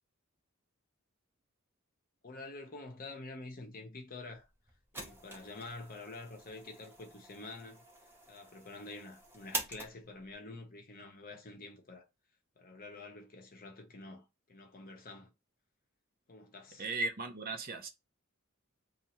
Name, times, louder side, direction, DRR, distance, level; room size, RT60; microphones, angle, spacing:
voice 1, 2.2-4.5 4.9-12.1 12.6-15.3 16.3-16.8, left 2 dB, 45° left, 0.8 m, -48 dB
sound 1, 4.3-10.3, right 2 dB, 10° right, 0.8 m, -46 dB
voice 2, 16.8-17.9, right 3 dB, 45° right, 0.6 m, -36 dB
2.7 x 2.5 x 4.1 m
head